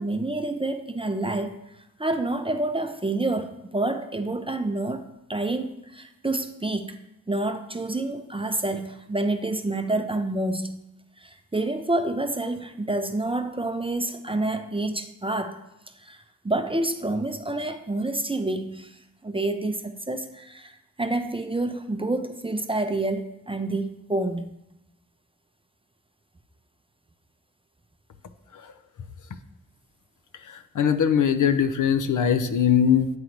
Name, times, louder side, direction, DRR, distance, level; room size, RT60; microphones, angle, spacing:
voice 1, 0.0-1.5 2.0-5.0 5.3-7.0 7.3-10.8 11.2-15.6 16.0-19.0 19.2-24.5, right 2 dB, 15° right, 7 dB, 0.5 m, -28 dB
voice 2, 30.5-33.1, left 8 dB, 60° left, 9 dB, 0.6 m, -21 dB
9.5 x 3.8 x 3.0 m, 0.91 s
cardioid pair, 45°, 36 cm